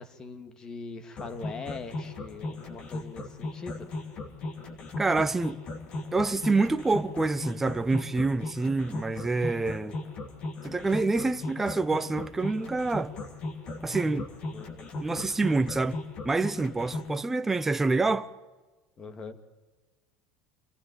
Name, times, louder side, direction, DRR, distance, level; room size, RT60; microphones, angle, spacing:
voice 1, 0.0-3.9 14.5-14.9 19.0-19.5, left 4 dB, 25° left, 2.1 m, -41 dB
sound 1, 1.2-17.1, left 2 dB, 40° left, 2.9 m, -37 dB
voice 2, 5.0-5.6 6.1-10.0 10.6-13.1 13.8-14.3 15.0-16.0 16.2-18.3, right 3 dB, 10° right, 0.8 m, -27 dB
25.0 x 15.0 x 9.3 m
supercardioid pair, 120°, 3 cm